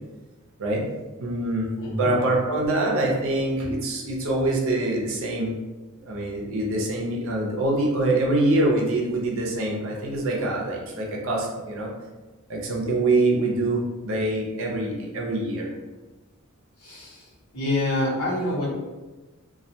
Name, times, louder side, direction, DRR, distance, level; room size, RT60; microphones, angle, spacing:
voice 1, 0.6-0.9 1.2-5.5 6.0-11.9 12.5-15.7, right 2 dB, 65° right, -2 dB, 0.5 m, -25 dB
voice 2, 16.8-17.2 17.5-18.7, left 1 dB, 80° left, -6 dB, 1.0 m, -26 dB
2.2 x 2.1 x 2.7 m, 1.2 s
head